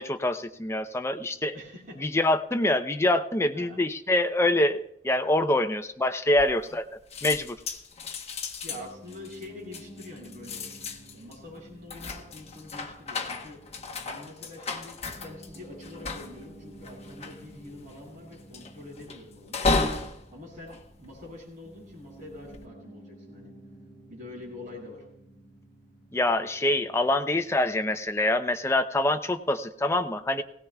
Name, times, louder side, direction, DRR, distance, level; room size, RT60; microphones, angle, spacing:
voice 1, 0.0-1.5 2.0-6.8 7.2-7.6 26.1-30.4, left 1 dB, 15° left, 8 dB, 0.6 m, -25 dB
voice 2, 1.5-2.0 3.5-3.8 8.6-10.6 11.1-13.6 14.0-19.6 20.3-23.6 24.1-25.0, left 2 dB, 50° right, -2 dB, 6.5 m, -45 dB
sound 1, 6.3-6.9 7.1-21.7 22.2-22.6, left 3 dB, 35° left, 1.1 m, -34 dB
Piano, 8.7-28.1, right 1 dB, 10° right, 3.7 m, -51 dB
20.0 x 17.0 x 2.3 m, 0.76 s
head